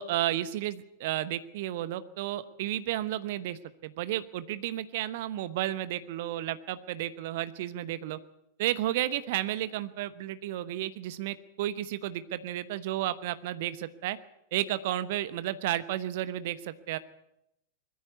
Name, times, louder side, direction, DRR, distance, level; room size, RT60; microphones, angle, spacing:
voice 1, 0.0-8.2 8.6-14.2 14.5-17.0, right 13 dB, 50° right, 14 dB, 1.0 m, -32 dB
21.0 x 14.5 x 9.5 m, 0.82 s
figure-of-eight pair, 90°, 0 cm